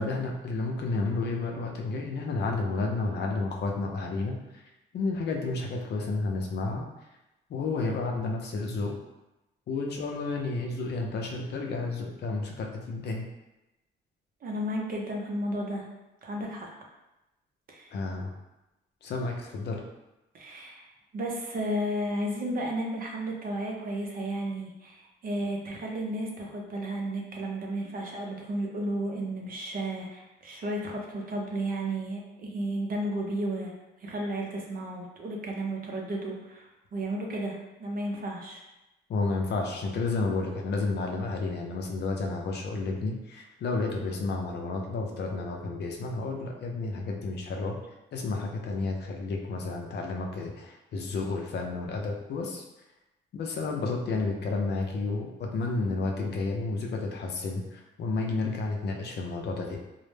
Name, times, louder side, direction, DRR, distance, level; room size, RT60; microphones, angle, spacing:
voice 1, 0.0-4.6 4.9-6.8 7.5-8.9 9.7-13.2 17.9-18.3 19.0-19.8 39.1-47.7 48.1-52.6 53.3-59.8, left 3 dB, 60° left, 1 dB, 0.5 m, -31 dB
voice 2, 14.4-15.8 16.2-16.7 17.7-17.9 20.3-20.9 21.1-33.7 34.0-38.6, right 1 dB, 45° right, 0 dB, 0.6 m, -33 dB
2.1 x 2.0 x 3.1 m, 0.98 s
cardioid pair, 90°, 20 cm